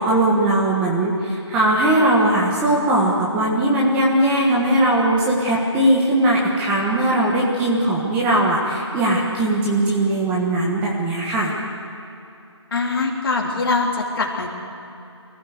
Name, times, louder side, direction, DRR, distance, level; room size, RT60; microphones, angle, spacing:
voice 1, 0.0-11.5, right 1 dB, 10° right, -4 dB, 1.4 m, -19 dB
voice 2, 12.7-14.5, left 3 dB, 50° left, 0 dB, 3.4 m, -22 dB
23.5 x 15.5 x 8.1 m, 2.8 s
figure-of-eight pair, 160°, 15 cm